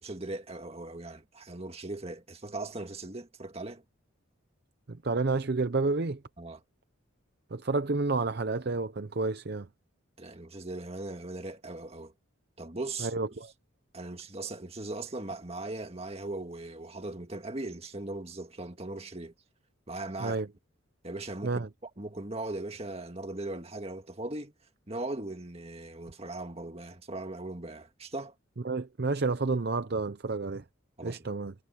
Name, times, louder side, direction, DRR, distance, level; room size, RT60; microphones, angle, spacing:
voice 1, 0.0-3.8 6.4-6.6 10.2-12.1 12.6-13.1 13.9-19.3 19.9-20.4 21.0-21.6 22.0-24.5 24.9-28.3 31.0-31.2, right 2 dB, 30° right, 1.9 m, -39 dB
voice 2, 4.9-6.2 7.5-9.7 13.0-13.5 20.2-20.5 21.4-21.7 28.6-30.6 31.0-31.5, right 3 dB, 50° right, 0.6 m, -30 dB
head